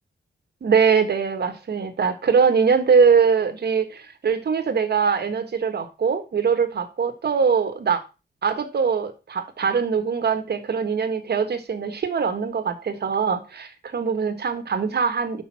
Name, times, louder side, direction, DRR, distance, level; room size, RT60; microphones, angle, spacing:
voice 1, 0.6-8.0 8.4-15.4, right 6 dB, 60° right, 7 dB, 1.4 m, -22 dB
6.2 x 5.5 x 5.7 m, 0.30 s
wide cardioid pair, 145°, 19 cm